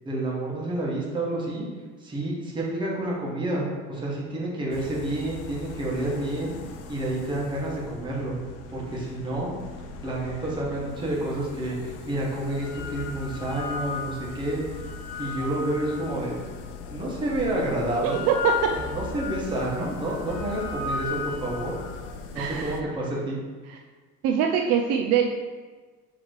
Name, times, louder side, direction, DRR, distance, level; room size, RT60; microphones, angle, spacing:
voice 1, 0.0-1.7 2.0-6.5 6.9-8.4 8.7-9.5 10.0-14.6 15.2-16.3 16.9-18.3 18.7-21.7 22.3-23.4, right 1 dB, 15° right, -4 dB, 1.2 m, -29 dB
sound 1, 4.7-22.8, left 4 dB, 55° left, 0.5 m, -41 dB
sound 2, 11.2-11.3 12.3-16.6 17.3-22.0, left 5 dB, 85° left, 1.1 m, -35 dB
voice 2, 18.0-18.6 22.4-22.8 23.7-23.8 24.2-25.3, right 8 dB, 55° right, 2 dB, 0.4 m, -23 dB
6.5 x 3.1 x 4.8 m, 1.4 s
cardioid pair, 175°, 30 cm